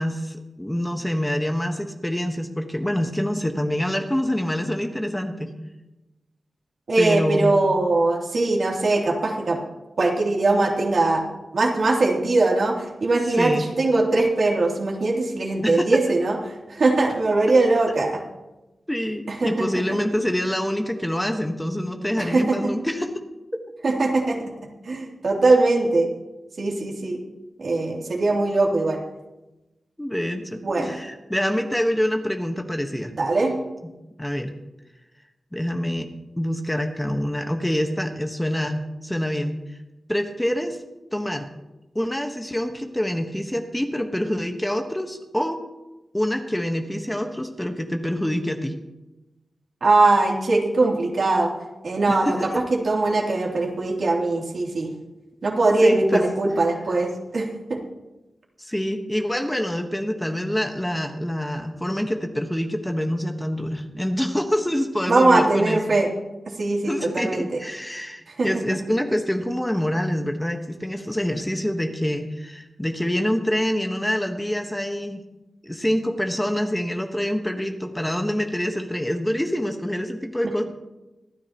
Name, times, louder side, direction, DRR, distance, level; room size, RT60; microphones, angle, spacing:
voice 1, 0.0-5.5 7.0-7.5 13.4-13.7 15.6-16.0 18.9-23.1 28.3-28.4 30.0-33.1 34.2-34.5 35.5-36.1 36.4-39.6 40.1-40.8 41.1-41.5 41.9-45.6 46.1-48.7 52.1-52.4 55.8-56.2 58.6-65.8 66.8-75.2 75.6-80.6, equal, 10° left, 4 dB, 1.3 m, -26 dB
voice 2, 6.9-9.6 10.0-11.2 11.5-16.4 16.7-18.2 19.4-19.7 22.2-22.7 23.8-24.4 24.8-26.1 26.6-27.2 27.6-29.0 30.6-31.0 33.1-33.5 49.8-51.5 51.8-52.4 52.7-54.9 55.4-57.8 65.0-66.1 66.6-67.6 68.4-68.5, right 2 dB, 65° right, -2 dB, 3.1 m, -21 dB
26.0 x 9.8 x 3.0 m, 1.0 s
cardioid pair, 70°, 0 cm